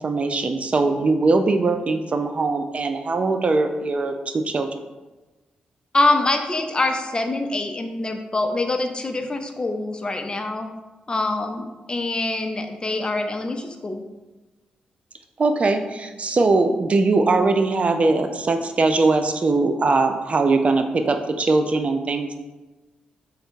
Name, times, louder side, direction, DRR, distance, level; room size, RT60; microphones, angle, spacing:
voice 1, 0.0-4.7 15.4-22.3, right 3 dB, 45° right, 7 dB, 0.4 m, -21 dB
voice 2, 5.9-10.7 11.1-14.0, left 2 dB, 30° left, 5 dB, 0.5 m, -24 dB
3.4 x 2.8 x 3.6 m, 1.1 s
cardioid pair, 65°, 3 cm